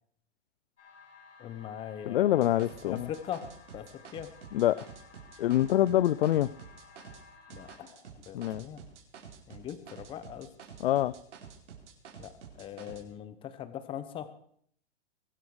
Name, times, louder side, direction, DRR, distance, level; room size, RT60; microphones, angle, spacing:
sound 1, 0.8-7.8, left 5 dB, 85° left, 7.3 m, -56 dB
voice 1, 1.4-4.3 7.5-8.8 9.5-10.5 12.2-14.3, left 10 dB, 15° left, 13 dB, 1.0 m, -41 dB
voice 2, 2.1-3.1 4.5-4.9 5.4-6.5 8.3-8.6 10.8-11.1, left 13 dB, 55° left, 18 dB, 0.6 m, -25 dB
sound 2, 2.3-7.2 7.5-13.0, right 7 dB, 80° right, 4.8 m, -49 dB
22.5 x 13.0 x 4.9 m, 0.63 s
hypercardioid pair, 155°, 35 cm